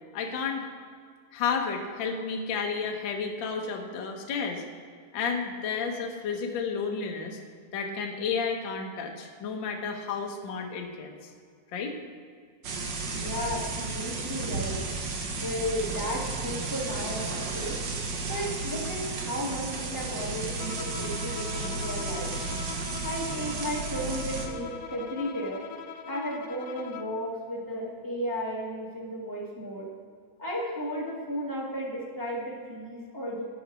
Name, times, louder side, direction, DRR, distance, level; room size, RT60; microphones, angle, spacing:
voice 1, 0.1-0.7 1.3-4.6 5.1-7.4 7.7-11.1 11.7-12.0, left 5 dB, 55° left, 1 dB, 1.3 m, -31 dB
sound 1, 12.6-24.5, right 3 dB, 80° right, 1.0 m, -33 dB
voice 2, 13.1-14.8 15.4-17.8 18.3-22.3 23.0-25.6 26.1-29.9 30.4-33.4, equal, 10° right, -4 dB, 0.9 m, -34 dB
Bowed string instrument, 20.6-27.2, left 7 dB, 80° left, 1.6 m, -42 dB
10.0 x 8.4 x 6.3 m, 2.1 s
omnidirectional pair, 3.9 m